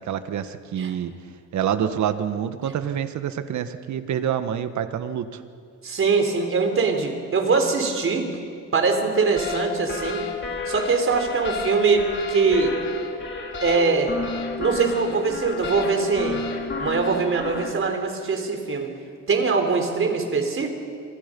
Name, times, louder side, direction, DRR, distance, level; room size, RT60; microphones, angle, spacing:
voice 1, 0.1-1.1 1.5-5.4, right 9 dB, 70° right, 9 dB, 1.6 m, -27 dB
voice 2, 5.8-8.2 8.7-10.2 10.7-12.7 13.6-14.1 14.6-16.4 16.8-18.9 19.3-20.7, right 4 dB, 45° right, 4 dB, 4.3 m, -22 dB
sound 1, 9.4-17.7, left 4 dB, 40° left, 4.3 m, -31 dB
29.0 x 24.5 x 5.5 m, 2.2 s
cardioid pair, 90°, 30 cm